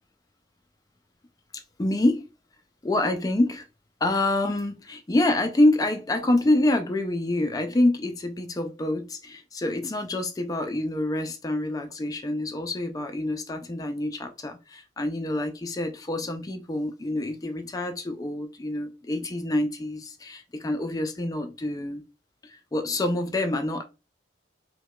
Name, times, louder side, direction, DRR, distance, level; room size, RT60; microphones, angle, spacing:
voice 1, 1.5-2.2 2.8-3.6 4.0-22.0 22.4-23.8, left 1 dB, 20° left, 0.3 m, -26 dB
4.6 x 2.1 x 2.3 m
head